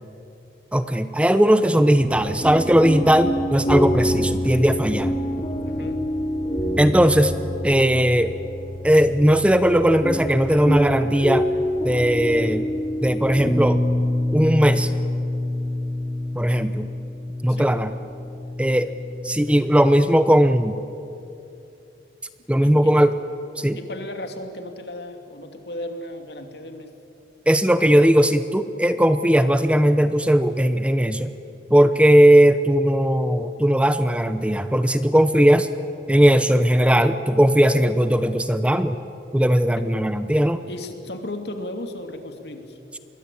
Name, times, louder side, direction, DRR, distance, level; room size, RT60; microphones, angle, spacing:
voice 1, 0.7-5.1 6.8-7.3 7.6-8.3 8.8-11.5 11.8-12.7 13.0-13.8 14.3-14.9 16.3-16.9 17.4-17.9 18.6-18.9 19.2-20.8 22.5-23.1 23.6-23.8 27.5-31.3 31.7-35.7 36.1-39.0 39.3-40.6, equal, 5° right, 11 dB, 0.7 m, -18 dB
sound 1, 2.0-19.8, left 1 dB, 30° left, 3.3 m, -26 dB
voice 2, 5.6-6.1 17.5-17.8 22.6-23.0 23.7-27.0 31.9-32.2 39.7-39.9 40.7-42.8, left 1 dB, 75° left, 5 dB, 2.6 m, -35 dB
27.0 x 22.0 x 8.4 m, 2.7 s
head